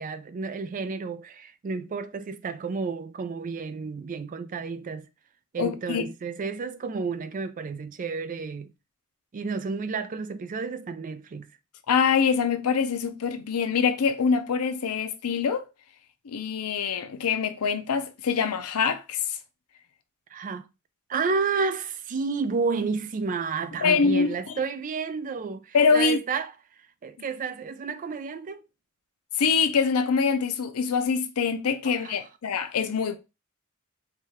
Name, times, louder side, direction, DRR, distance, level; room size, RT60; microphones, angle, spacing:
voice 1, 0.0-5.1 5.5-8.7 9.3-11.5 20.3-20.7 21.1-26.5 27.0-28.6 31.8-32.2, right 4 dB, 35° right, 0.3 m, -31 dB
voice 2, 5.6-6.0 11.9-15.7 16.2-19.4 23.8-24.6 25.7-26.2 29.4-33.2, left 5 dB, 85° left, 0.5 m, -24 dB
4.6 x 2.3 x 2.9 m
head